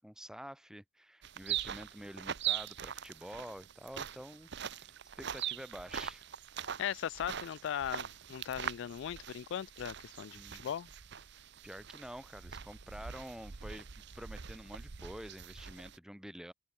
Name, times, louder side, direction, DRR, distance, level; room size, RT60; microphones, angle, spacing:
voice 1, 0.0-6.3 10.3-10.6 11.6-13.9 14.1-16.5, equal, 5° right, 2.0 m, -48 dB
sound 1, 1.2-16.0, right 9 dB, 55° right, 0.8 m, -42 dB
voice 2, 6.8-10.9, left 9 dB, 60° left, 0.3 m, -38 dB
open air
head